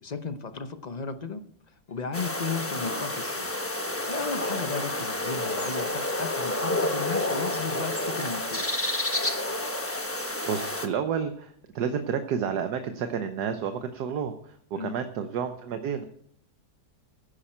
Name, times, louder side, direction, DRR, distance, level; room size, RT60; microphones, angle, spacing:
voice 1, 0.0-1.4 1.9-3.5 4.1-8.7 14.8-15.0, left 5 dB, 40° left, 10 dB, 0.6 m, -35 dB
sound 1, 2.1-10.9, left 1 dB, 10° left, 0.9 m, -29 dB
voice 2, 10.0-16.1, right 7 dB, 75° right, 7 dB, 1.4 m, -31 dB
15.5 x 10.0 x 4.4 m, 0.66 s
omnidirectional pair, 1.8 m